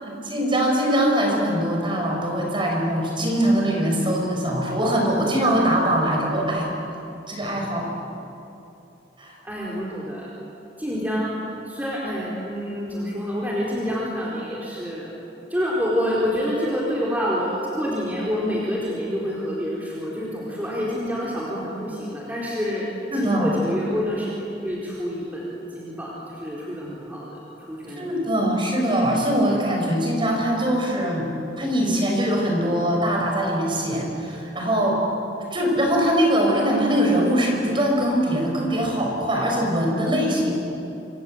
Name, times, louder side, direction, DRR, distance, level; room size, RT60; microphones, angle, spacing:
voice 1, 0.0-6.7 7.3-7.9 9.2-9.3 23.1-23.5 28.0-31.3 31.6-35.1 35.5-40.5, equal, 30° right, 0 dB, 6.1 m, -22 dB
voice 2, 9.4-10.3 10.8-15.2 15.5-24.3 24.6-28.2, equal, 10° right, -5 dB, 4.4 m, -27 dB
27.0 x 26.0 x 8.1 m, 2.9 s
head